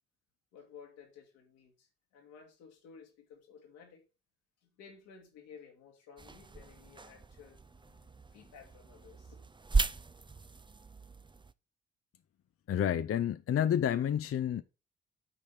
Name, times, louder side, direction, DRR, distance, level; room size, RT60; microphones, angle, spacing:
voice 1, 0.5-4.1 4.6-7.6 8.3-9.4, left 6 dB, 85° left, 1.9 m, -55 dB
sound 1, 6.2-11.5, right 3 dB, 15° right, 0.5 m, -37 dB
voice 2, 12.7-14.6, left 9 dB, 50° left, 0.6 m, -29 dB
8.9 x 4.3 x 5.0 m
hypercardioid pair, 40°, 30 cm